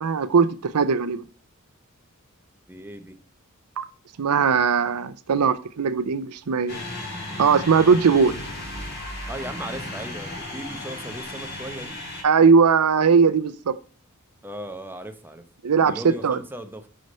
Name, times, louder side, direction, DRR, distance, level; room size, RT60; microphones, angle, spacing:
voice 1, 0.0-1.2 3.8-3.9 4.2-6.8 7.4-8.4 12.2-13.8 15.6-15.9 16.2-16.4, right 5 dB, 85° right, 0.6 m, -19 dB
voice 2, 2.7-3.2 9.3-12.0 14.4-15.4 15.8-16.9, right 1 dB, 10° right, 0.8 m, -37 dB
sound 1, 6.7-12.2, left 1 dB, 50° left, 3.2 m, -35 dB
6.3 x 5.7 x 5.4 m
head